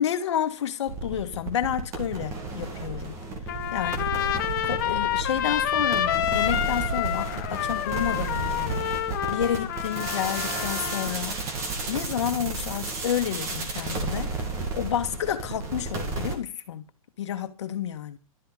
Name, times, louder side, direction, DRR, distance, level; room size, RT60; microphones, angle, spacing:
voice 1, 0.0-3.2 3.7-4.2 4.6-8.8 9.3-11.4 11.9-14.3 14.7-16.8 17.2-18.2, left 9 dB, 50° left, 1.9 m, -30 dB
sound 1, 0.9-16.3, right 3 dB, 15° right, 2.2 m, -33 dB
Trumpet, 3.5-11.1, left 11 dB, 35° left, 1.3 m, -28 dB
13.0 x 7.8 x 8.1 m
hypercardioid pair, 175°, 18 cm